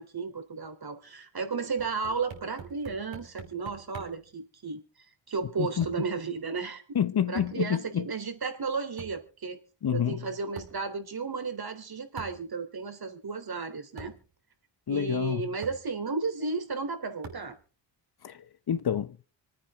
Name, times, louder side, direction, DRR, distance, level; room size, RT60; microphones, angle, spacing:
voice 1, 0.0-4.8 5.3-6.8 7.3-9.6 9.9-14.1 14.9-17.6, right 4 dB, 55° right, 3.6 m, -33 dB
sound 1, 1.8-4.3 5.8-6.1 7.4-7.6 9.0-9.3 10.6-10.9 12.2-12.5 13.4-13.5 14.0-14.3 15.1-15.2 15.6-15.9 17.2-17.6, right 5 dB, 80° right, 5.2 m, -45 dB
voice 2, 6.9-8.1 9.8-10.2 14.9-15.4 18.2-19.2, left 9 dB, 55° left, 1.1 m, -28 dB
26.5 x 9.5 x 3.7 m
supercardioid pair, 50°, 45 cm